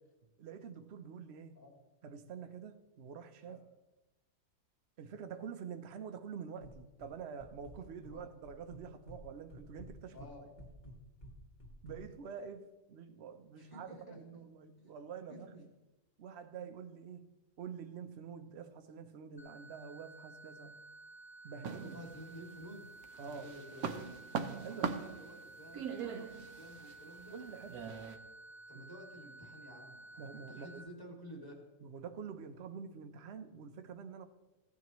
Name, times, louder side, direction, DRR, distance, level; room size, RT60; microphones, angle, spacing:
voice 1, 0.4-1.6 2.0-3.6 5.0-10.3 11.8-15.5 16.2-17.3 17.6-20.8 21.4-22.0 23.2-23.5 24.6-25.0 27.3-28.0 28.7-28.8 30.2-30.9 31.8-34.3, right 6 dB, 55° right, 8 dB, 0.8 m, -47 dB
sound 1, 6.6-7.1 7.4-8.2 8.4-9.2 9.5-12.0, equal, 30° left, 1.6 m, -52 dB
voice 2, 10.1-10.4 13.5-14.4 14.8-14.9 15.3-15.6 21.8-22.8 23.2-24.2 24.7-27.4 28.7-31.6, equal, 15° left, -1 dB, 2.3 m, -52 dB
sound 2, 19.4-30.8, right 2 dB, 50° left, 3.3 m, -54 dB
sound 3, 21.6-22.6 23.0-28.2, right 6 dB, 70° right, 1.2 m, -41 dB
16.0 x 9.9 x 3.1 m, 1.1 s
omnidirectional pair, 1.7 m